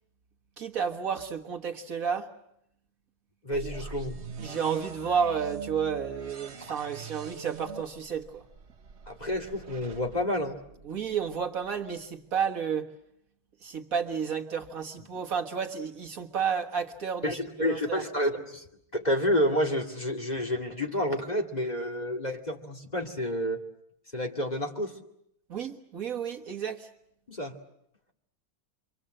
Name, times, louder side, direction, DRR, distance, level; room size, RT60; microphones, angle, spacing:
voice 1, 0.6-2.3 3.8-3.9 4.4-8.4 10.8-12.9 13.6-18.0 25.5-26.9, right 7 dB, 60° right, 3 dB, 1.9 m, -31 dB
voice 2, 3.4-4.2 6.6-6.7 9.1-10.6 17.2-18.6 18.9-23.6 24.1-25.0 27.3-27.5, equal, 25° left, 2 dB, 2.5 m, -29 dB
sound 1, 3.5-11.4, right 5 dB, 45° right, 1.5 m, -44 dB
29.0 x 24.0 x 7.7 m, 0.78 s
omnidirectional pair, 1.6 m